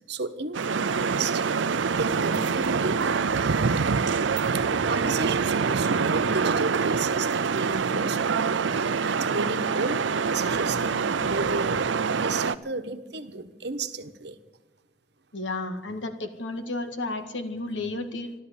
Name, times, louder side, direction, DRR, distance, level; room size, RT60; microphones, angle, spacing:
voice 1, 0.1-1.5 1.8-3.1 3.4-4.1 4.5-14.4, right 3 dB, 60° right, 10 dB, 1.2 m, -33 dB
sound 1, 0.5-12.5, right 5 dB, 80° right, 0.6 m, -25 dB
voice 2, 15.3-18.3, left 2 dB, 80° left, 7 dB, 1.9 m, -32 dB
13.5 x 12.5 x 8.3 m, 1.2 s
head